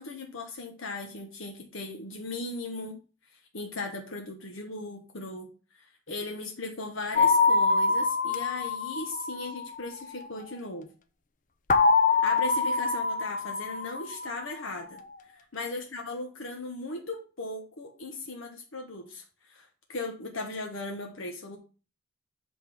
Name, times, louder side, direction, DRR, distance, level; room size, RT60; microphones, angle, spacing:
voice 1, 0.0-3.0 3.5-5.5 5.7-10.9 12.1-21.6, left 2 dB, 70° left, 2 dB, 1.1 m, -38 dB
sound 1, 7.2-10.0 11.7-14.5, left 4 dB, 40° left, 0.6 m, -25 dB
8.2 x 3.6 x 6.0 m, 0.35 s
head